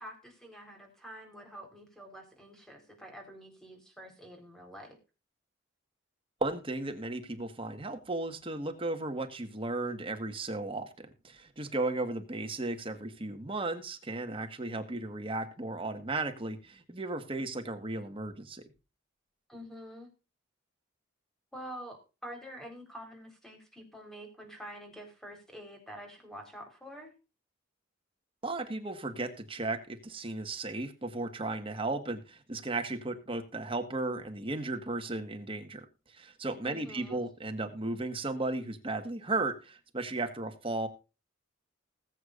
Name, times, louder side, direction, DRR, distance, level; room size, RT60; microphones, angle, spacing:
voice 1, 0.0-5.0 19.5-20.1 21.5-27.1 36.6-37.2, equal, ahead, 3 dB, 4.2 m, -47 dB
voice 2, 6.4-18.7 28.4-35.9 36.1-40.9, right 2 dB, 25° right, 7 dB, 1.6 m, -35 dB
20.0 x 8.4 x 2.6 m, 0.31 s
head